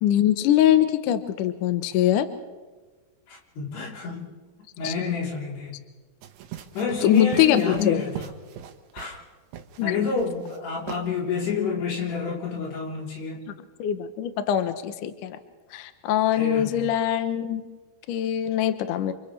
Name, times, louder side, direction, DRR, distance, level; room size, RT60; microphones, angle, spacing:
voice 1, 0.0-2.3 4.8-4.9 7.0-8.0 9.8-10.1 13.8-15.4 15.7-17.6 18.1-19.1, left 11 dB, 70° left, 9 dB, 2.1 m, -22 dB
voice 2, 3.3-4.3 4.8-5.8 6.7-8.3 8.9-9.2 9.8-13.4 16.4-16.9, left 5 dB, 85° left, -3 dB, 5.8 m, -29 dB
sound 1, 6.2-9.2 9.5-9.8 10.2-10.6 10.9-11.0, right 11 dB, 90° right, 3.2 m, -40 dB
29.5 x 27.5 x 3.3 m, 1.3 s
omnidirectional pair, 4.6 m